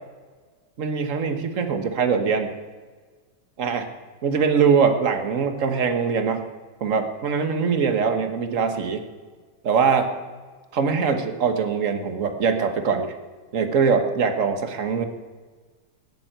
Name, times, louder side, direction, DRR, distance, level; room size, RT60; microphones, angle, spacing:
voice 1, 0.8-2.5 3.6-3.9 4.2-6.4 6.8-9.0 9.6-10.1 10.7-13.1 13.5-15.0, right 6 dB, 40° right, 7 dB, 1.5 m, -22 dB
19.0 x 7.6 x 9.0 m, 1.5 s
omnidirectional pair, 2.4 m